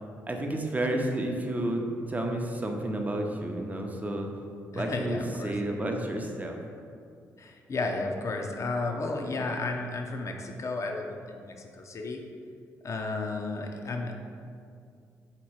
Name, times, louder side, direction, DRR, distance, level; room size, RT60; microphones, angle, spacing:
voice 1, 0.3-1.8 2.1-4.3 4.8-6.6, right 1 dB, 20° right, 2 dB, 0.7 m, -31 dB
voice 2, 4.7-5.5 7.4-12.2 12.8-14.1, left 3 dB, 45° left, 3 dB, 0.6 m, -33 dB
3.8 x 2.9 x 4.6 m, 2.3 s
hypercardioid pair, 45°, 7 cm